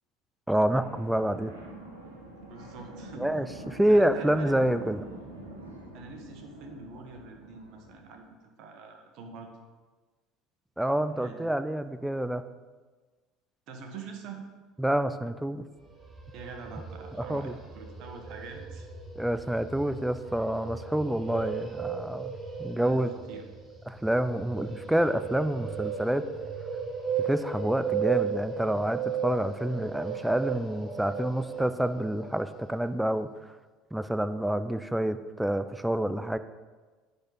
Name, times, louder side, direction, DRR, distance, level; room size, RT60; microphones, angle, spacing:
voice 1, 0.5-1.5 3.2-5.1 10.8-12.4 14.8-15.6 17.3-17.5 19.1-22.3 22.6-23.1 23.9-26.2 27.2-33.5 33.9-36.4, right 1 dB, 5° right, 11 dB, 0.6 m, -28 dB
sound 1, 0.7-8.1, right 1 dB, 85° right, 1.4 m, -45 dB
voice 2, 2.4-3.3 3.9-4.6 5.9-9.6 11.1-11.5 13.7-14.4 16.3-18.9 22.8-23.4 25.8-26.1, right 4 dB, 60° right, 4 dB, 1.5 m, -45 dB
sound 2, 15.8-32.8, right 7 dB, 25° right, 2.2 m, -36 dB
10.0 x 4.2 x 6.9 m, 1.3 s
hypercardioid pair, 70°, 0 cm